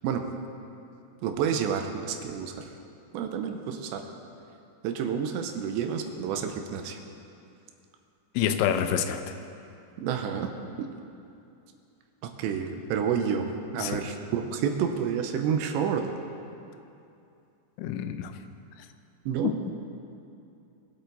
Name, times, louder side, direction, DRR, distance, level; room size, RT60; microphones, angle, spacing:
voice 1, 1.2-2.7 3.1-4.0 4.8-7.0 10.0-10.5 10.8-10.9 12.2-13.5 13.7-16.0 19.3-19.5, right 7 dB, 80° right, 5 dB, 2.9 m, -29 dB
voice 2, 8.4-9.2 13.8-14.0 17.8-18.3 19.4-19.7, left 9 dB, 85° left, 9 dB, 2.9 m, -27 dB
22.5 x 8.1 x 4.0 m, 2.6 s
omnidirectional pair, 5.3 m